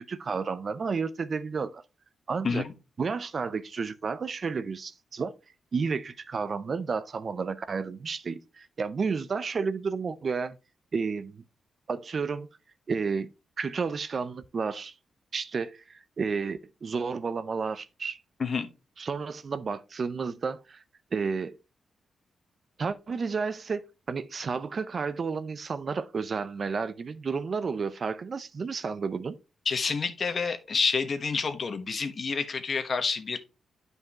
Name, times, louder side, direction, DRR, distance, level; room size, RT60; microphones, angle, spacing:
voice 1, 0.0-1.8 2.3-2.7 3.0-5.3 5.7-10.6 10.9-11.4 11.9-12.5 12.9-13.3 13.6-14.9 15.3-18.2 19.0-20.8 21.1-21.6 22.8-23.8 24.1-29.4, right 5 dB, 50° right, 0.5 m, -31 dB
voice 2, 29.7-33.4, left 5 dB, 50° left, 1.1 m, -28 dB
9.5 x 5.3 x 2.9 m
cardioid pair, 75°, 0 cm